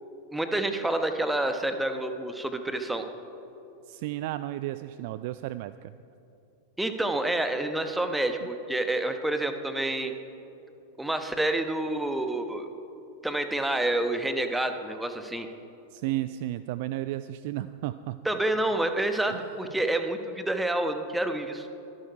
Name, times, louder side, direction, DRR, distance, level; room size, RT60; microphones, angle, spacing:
voice 1, 0.3-3.0 6.8-10.1 11.0-12.7 13.2-15.5 18.2-21.7, right 1 dB, 5° right, 7 dB, 1.1 m, -28 dB
voice 2, 3.9-5.9 15.9-18.2 19.3-19.5, right 15 dB, 50° right, 14 dB, 0.3 m, -33 dB
24.0 x 11.5 x 4.7 m, 3.0 s
figure-of-eight pair, 90°, 0 cm